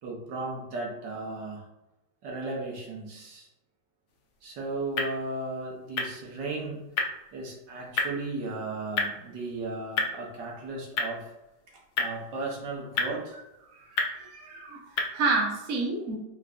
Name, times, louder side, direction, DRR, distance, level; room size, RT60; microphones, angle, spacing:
voice 1, 0.0-1.6 2.2-3.5 4.4-6.9 7.3-11.3 11.7-13.4, right 2 dB, 70° right, -2 dB, 1.5 m, -35 dB
sound 1, 4.1-15.4, left 3 dB, 65° left, 1.1 m, -35 dB
voice 2, 13.7-16.2, right 3 dB, 55° right, -1 dB, 1.1 m, -30 dB
4.3 x 3.8 x 2.4 m, 0.95 s
omnidirectional pair, 2.0 m